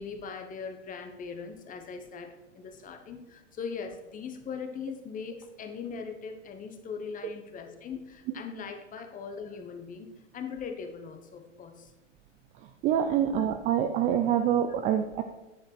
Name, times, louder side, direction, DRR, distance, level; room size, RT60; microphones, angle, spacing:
voice 1, 0.0-10.1 10.3-11.9 13.0-13.1 13.4-13.5, left 6 dB, 20° left, 7 dB, 1.1 m, -40 dB
voice 2, 12.8-15.2, right 9 dB, 20° right, 7 dB, 0.3 m, -26 dB
9.6 x 5.1 x 5.8 m, 1.0 s
hypercardioid pair, 120°, 36 cm